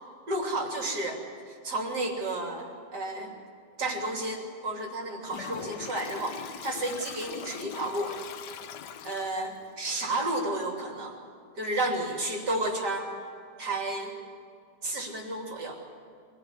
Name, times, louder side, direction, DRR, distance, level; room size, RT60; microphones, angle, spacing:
voice 1, 0.3-3.3 3.8-8.2 9.0-11.2 11.6-13.1 13.6-14.2 14.8-15.8, right 2 dB, 75° right, 0 dB, 3.8 m, -32 dB
Toilet flush, 5.3-9.6, left 8 dB, 85° left, 1.6 m, -41 dB
24.5 x 19.0 x 9.8 m, 2.3 s
omnidirectional pair, 1.8 m